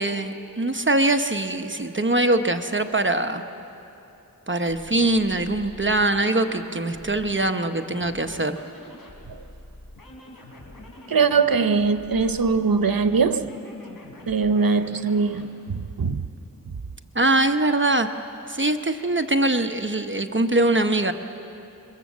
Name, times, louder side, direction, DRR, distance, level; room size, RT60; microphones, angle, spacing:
voice 1, 0.0-3.4 4.5-8.6 17.1-18.1 18.5-21.1, right 2 dB, 35° right, 1.0 m, -22 dB
sound 1, 4.6-15.5, left 1 dB, 80° left, 4.0 m, -45 dB
voice 2, 11.1-13.5 14.3-16.2, right 5 dB, 80° right, 0.9 m, -21 dB
27.5 x 23.0 x 7.4 m
wide cardioid pair, 60°, 34 cm